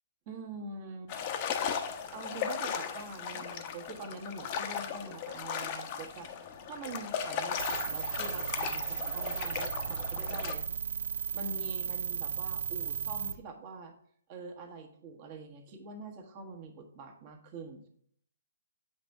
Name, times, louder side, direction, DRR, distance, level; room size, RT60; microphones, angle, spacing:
voice 1, 0.3-1.1 2.1-10.7 11.3-13.9 14.3-17.9, right 3 dB, 35° right, 4 dB, 1.4 m, -45 dB
sound 1, 1.1-10.5, left 7 dB, 35° left, 0.8 m, -37 dB
sound 2, 7.6-13.4, right 7 dB, 65° right, 0.6 m, -35 dB
8.0 x 3.4 x 5.4 m, 0.62 s
hypercardioid pair, 145°, 0 cm